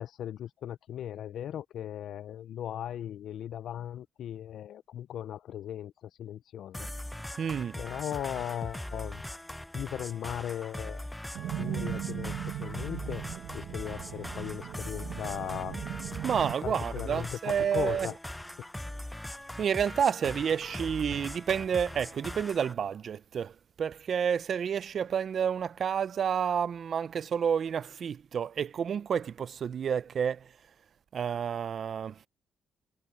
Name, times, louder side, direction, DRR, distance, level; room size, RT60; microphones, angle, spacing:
voice 1, 0.0-6.9 7.8-9.2 9.7-11.1 11.6-13.2 13.5-15.8 16.4-18.2, left 10 dB, 70° left, 0.6 m, -38 dB
sound 1, 6.7-22.7, left 1 dB, 5° left, 0.5 m, -41 dB
voice 2, 7.4-7.8 16.2-18.1 19.6-30.5 31.1-32.2, right 7 dB, 55° right, 0.5 m, -30 dB
sound 2, 11.3-16.5, right 11 dB, 80° right, 1.6 m, -38 dB
cardioid pair, 90°, 0 cm